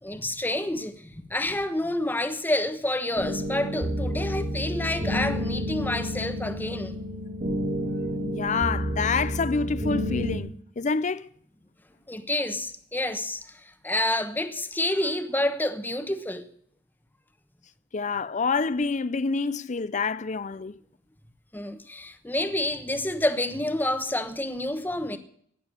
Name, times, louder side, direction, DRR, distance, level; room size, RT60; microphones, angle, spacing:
voice 1, 0.0-7.0 12.1-16.4 21.5-25.2, left 1 dB, 10° left, 1.1 m, -28 dB
sound 1, 3.2-10.4, equal, 45° right, 3.1 m, -30 dB
voice 2, 8.2-11.3 17.9-20.8, left 4 dB, 40° left, 0.6 m, -27 dB
18.0 x 7.0 x 8.5 m
head